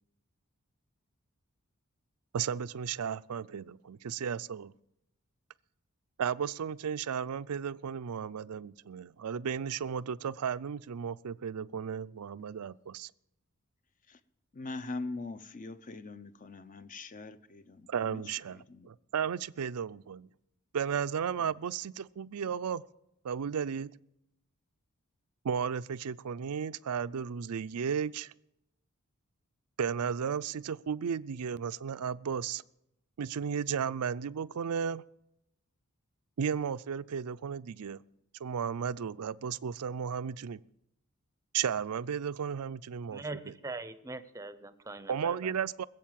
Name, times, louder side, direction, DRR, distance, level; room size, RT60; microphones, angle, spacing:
voice 1, 2.3-4.7 6.2-13.1 17.9-20.3 20.7-22.9 23.2-23.9 25.4-28.3 29.8-32.6 33.2-35.0 36.4-38.0 38.4-40.6 41.5-43.5 45.1-45.8, right 7 dB, 85° right, 17 dB, 0.4 m, -34 dB
voice 2, 14.5-18.9, left 3 dB, 35° left, 12 dB, 0.7 m, -42 dB
voice 3, 43.1-45.5, right 3 dB, 15° right, 12 dB, 0.7 m, -42 dB
20.5 x 7.9 x 7.5 m, 0.82 s
head